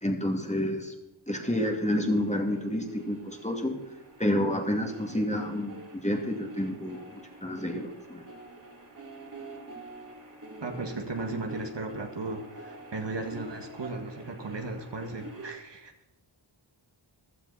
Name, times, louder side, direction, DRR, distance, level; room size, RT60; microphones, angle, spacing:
voice 1, 0.0-0.9 1.3-3.8 4.2-8.3, left 1 dB, 15° left, 2 dB, 2.5 m, -29 dB
sound 1, 1.4-15.5, right 2 dB, 40° right, 3.3 m, -47 dB
voice 2, 10.6-15.9, right 2 dB, 60° right, 3 dB, 2.0 m, -36 dB
15.0 x 12.0 x 4.2 m, 0.98 s
wide cardioid pair, 65°, 49 cm